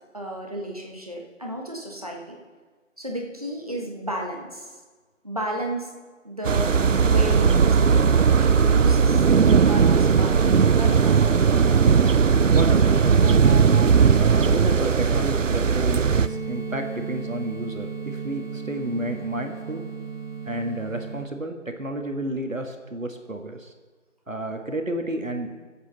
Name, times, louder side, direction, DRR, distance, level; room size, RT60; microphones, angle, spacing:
voice 1, 0.1-2.4 3.0-4.8 5.2-5.9 6.2-6.7 7.0-11.4, right 1 dB, 30° right, 0 dB, 1.3 m, -33 dB
sound 1, 6.5-16.3, right 6 dB, 75° right, 0.6 m, -18 dB
voice 2, 12.3-13.7 14.2-19.8 20.5-23.7 24.3-25.6, right 1 dB, 90° right, 4 dB, 1.7 m, -31 dB
sound 2, 16.2-21.2, right 5 dB, 85° left, 2.5 m, -34 dB
22.0 x 8.1 x 4.0 m, 1.4 s
figure-of-eight pair, 170°, 38 cm